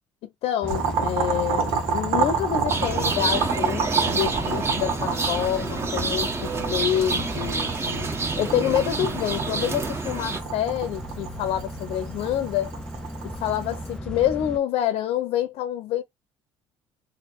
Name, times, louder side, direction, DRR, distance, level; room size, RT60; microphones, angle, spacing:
voice 1, 0.2-8.1 8.4-12.7 13.2-16.0, left 11 dB, 70° left, 0.7 m, -27 dB
sound 1, 0.6-14.6, equal, 5° left, 0.6 m, -36 dB
Boiling, 0.7-13.9, right 6 dB, 80° right, 1.5 m, -30 dB
sound 2, 2.7-10.4, right 4 dB, 25° right, 1.5 m, -28 dB
3.2 x 2.7 x 4.4 m
supercardioid pair, 90°, 10 cm